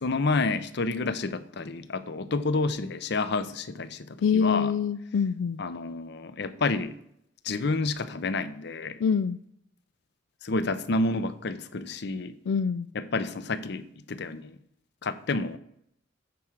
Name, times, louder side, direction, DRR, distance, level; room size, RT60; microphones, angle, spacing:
voice 1, 0.0-4.7 5.6-7.0 7.4-9.0 10.4-12.3 12.9-14.6 15.0-15.6, left 3 dB, 60° left, 13 dB, 0.7 m, -29 dB
voice 2, 4.2-5.6 9.0-9.4 12.5-12.9, left 6 dB, 85° left, 12 dB, 0.3 m, -25 dB
9.3 x 4.7 x 6.3 m, 0.72 s
head